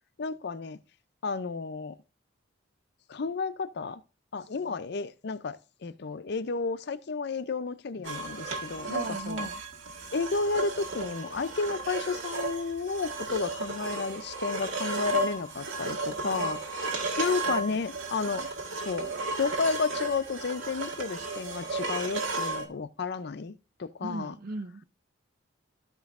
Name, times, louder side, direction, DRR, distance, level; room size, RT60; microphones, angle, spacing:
voice 1, 0.2-0.8 1.2-1.9 3.1-4.0 4.3-9.5 10.1-16.6 17.2-18.5 18.8-19.1 19.4-24.3, left 4 dB, 55° left, 0.5 m, -32 dB
sound 1, 8.0-22.7, right 3 dB, 75° right, 1.7 m, -34 dB
voice 2, 8.9-9.6 16.2-16.6 17.5-17.8 24.0-24.8, right 2 dB, 45° right, 0.5 m, -38 dB
15.0 x 5.3 x 2.5 m
head